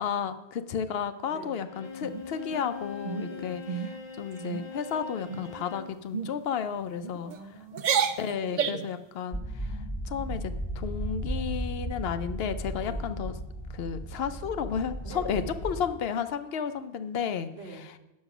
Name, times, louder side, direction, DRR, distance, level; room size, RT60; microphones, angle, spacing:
voice 1, 0.0-3.6 4.2-7.3 8.2-9.8 10.1-13.3 13.7-17.5, left 7 dB, 70° left, 11 dB, 0.8 m, -32 dB
voice 2, 1.3-1.6 3.3-3.6 7.2-8.1 8.4-8.7 12.8-13.1 14.1-14.4 15.0-15.5 17.5-17.9, right 3 dB, 85° right, 2 dB, 1.5 m, -45 dB
Bowed string instrument, 1.6-6.0, left 5 dB, 35° left, 0.5 m, -41 dB
sound 1, 2.0-2.6 3.0-3.3 3.7-3.9 4.3-4.7 5.3-5.6 6.1-6.3 7.0-7.4 7.7-8.9, right 7 dB, 55° right, 0.6 m, -30 dB
sound 2, 9.3-15.8, right 1 dB, 10° left, 1.0 m, -35 dB
7.5 x 6.4 x 5.9 m, 0.94 s
omnidirectional pair, 1.1 m